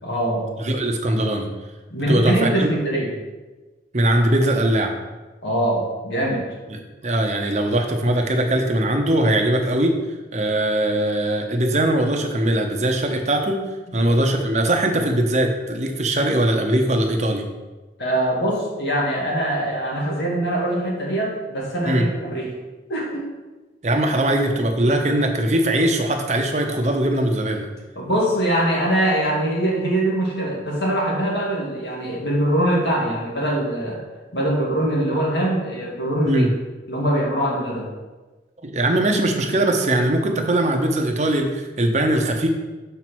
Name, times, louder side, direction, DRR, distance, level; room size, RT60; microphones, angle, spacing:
voice 1, 0.0-0.4 1.9-3.1 5.4-6.5 14.0-14.1 18.0-22.5 22.9-23.3 28.0-34.0 34.3-36.5 36.9-37.9, right 1 dB, 75° left, -3 dB, 2.0 m, -22 dB
voice 2, 0.6-1.5 2.1-2.7 3.9-4.9 6.7-9.9 10.3-13.6 13.9-17.5 21.9-22.0 23.8-27.7 36.2-36.5 38.6-42.5, right 1 dB, 40° right, 3 dB, 0.8 m, -21 dB
6.5 x 4.6 x 6.0 m, 1.2 s
head